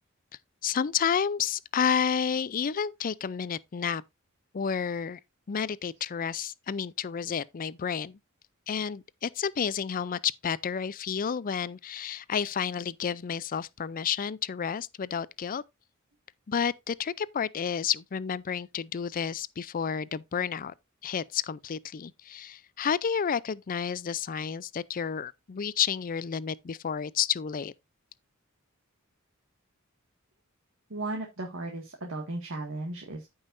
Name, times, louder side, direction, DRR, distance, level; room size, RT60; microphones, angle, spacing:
voice 1, 0.6-4.0 4.5-5.2 5.5-8.2 8.7-15.6 16.5-20.7 21.0-27.7, left 7 dB, 40° left, 0.4 m, -30 dB
voice 2, 30.9-33.3, right 2 dB, 65° right, 1.8 m, -35 dB
14.0 x 5.6 x 2.5 m
head